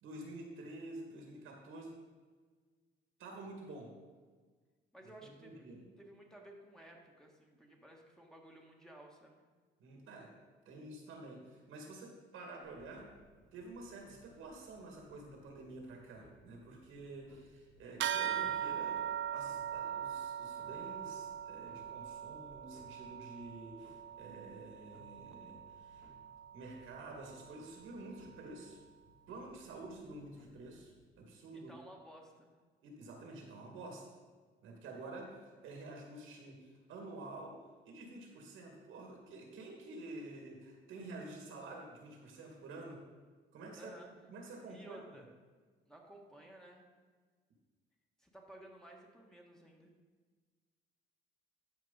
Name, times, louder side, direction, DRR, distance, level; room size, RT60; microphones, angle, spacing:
voice 1, 0.0-1.9 3.2-3.9 5.4-5.8 9.8-10.3 10.7-13.1 13.5-26.1 26.5-28.8 29.3-31.7 32.8-34.0 34.6-37.6 37.8-43.0 43.5-45.0, right 2 dB, 85° right, 0 dB, 2.0 m, -49 dB
voice 2, 4.9-5.7 6.0-9.4 31.5-32.5 43.8-44.1 44.7-45.2 45.8-46.9 48.2-49.9, right 1 dB, 5° left, 0 dB, 1.5 m, -55 dB
Clock, 12.6-31.0, left 2 dB, 40° left, 2.7 m, -64 dB
sound 1, 18.0-27.8, right 9 dB, 70° right, 0.4 m, -41 dB
12.5 x 4.8 x 4.0 m, 1.5 s
cardioid pair, 90°, 20 cm